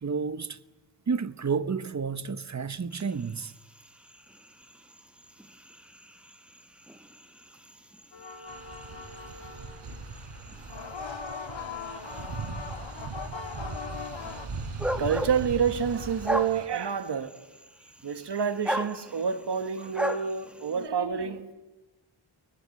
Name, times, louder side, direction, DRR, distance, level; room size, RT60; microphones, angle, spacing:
voice 1, 0.0-0.6 1.1-3.5, right 5 dB, 35° right, 0.9 m, -30 dB
sound 1, 2.9-20.9, equal, ahead, 1.3 m, -39 dB
sound 2, 8.1-9.9 10.6-14.5, left 5 dB, 65° left, 2.5 m, -40 dB
sound 3, 8.5-16.7, right 3 dB, 85° right, 3.8 m, -39 dB
voice 2, 15.0-17.4 18.0-21.5, right 6 dB, 55° right, 1.6 m, -28 dB
29.0 x 23.0 x 8.6 m
wide cardioid pair, 125°, 50 cm